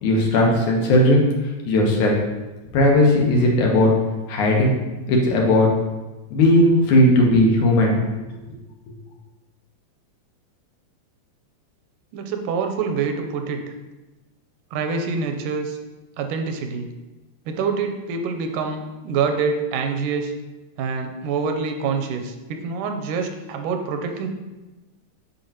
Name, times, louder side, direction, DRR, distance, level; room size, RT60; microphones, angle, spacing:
voice 1, 0.0-1.2 1.7-2.2 2.7-3.9 4.3-4.7 5.1-5.7 6.3-8.1, left 1 dB, 75° left, -1 dB, 2.5 m, -17 dB
voice 2, 12.1-13.6 14.7-15.8 16.2-16.9 17.5-20.3 20.8-24.3, right 5 dB, 85° right, 5 dB, 2.2 m, -26 dB
7.9 x 5.9 x 2.9 m, 1.1 s
omnidirectional pair, 3.6 m